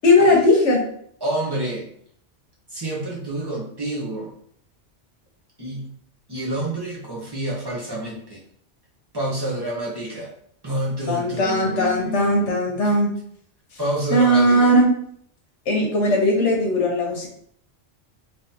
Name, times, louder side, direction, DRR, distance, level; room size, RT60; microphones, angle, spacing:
voice 1, 0.0-0.8 11.1-13.1 14.1-14.9 15.7-17.3, left 1 dB, 80° left, 0 dB, 1.3 m, -18 dB
voice 2, 1.2-1.9 2.7-4.3 5.6-5.9 6.3-8.4 9.1-10.3 10.6-12.9 13.8-14.8, right 1 dB, 20° right, -4 dB, 1.0 m, -28 dB
3.6 x 3.3 x 2.8 m, 0.63 s
omnidirectional pair, 1.2 m